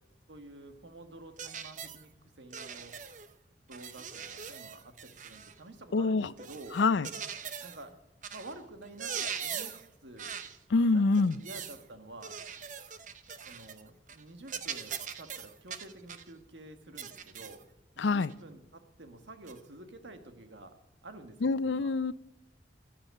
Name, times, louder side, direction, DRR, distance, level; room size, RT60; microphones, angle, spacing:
voice 1, 0.3-2.1 2.4-3.0 3.7-6.8 7.6-8.0 8.3-10.4 10.8-12.4 13.5-17.6 18.0-20.8 21.0-21.9, right 2 dB, 80° right, 1.6 m, -49 dB
sound 1, 1.4-2.0 2.5-3.3 3.7-5.6 6.4-7.8 8.2-8.5 8.8-9.9 10.2-10.6 11.1-11.8 12.2-13.8 14.1-14.2 14.5-16.3 17.0-17.6 18.2-18.3 19.5-19.6, right 7 dB, 45° right, 0.8 m, -41 dB
voice 2, 5.9-6.3 6.7-7.1 10.7-11.4 18.0-18.3 21.4-22.1, left 3 dB, 80° left, 0.5 m, -26 dB
12.0 x 11.0 x 8.3 m
head